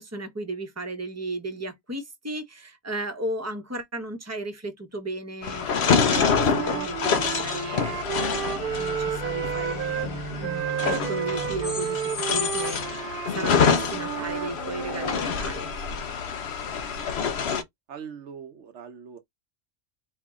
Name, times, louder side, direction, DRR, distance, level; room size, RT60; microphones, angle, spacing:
voice 1, 0.0-15.7, right 2 dB, 15° right, 1.1 m, -35 dB
sound 1, 5.4-17.6, left 6 dB, 70° left, 1.1 m, -27 dB
Wind instrument woodwind instrument, 5.7-10.1 10.4-15.2, right 10 dB, 60° right, 0.7 m, -32 dB
Bowed string instrument, 8.5-13.1, right 5 dB, 20° left, 1.2 m, -39 dB
voice 2, 17.9-19.2, right 7 dB, 75° right, 1.1 m, -41 dB
4.7 x 2.8 x 3.6 m
omnidirectional pair, 1.2 m